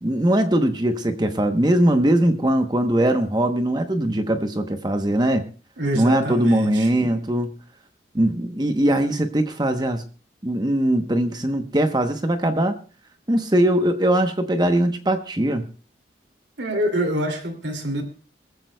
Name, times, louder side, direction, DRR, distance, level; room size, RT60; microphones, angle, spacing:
voice 1, 0.0-5.5 5.9-7.5 8.1-10.0 10.4-12.8 13.3-15.6, right 1 dB, 25° right, 7 dB, 0.9 m, -21 dB
voice 2, 5.8-6.9 16.6-18.0, right 1 dB, 80° right, 5 dB, 2.5 m, -25 dB
22.5 x 14.0 x 2.2 m, 0.37 s
head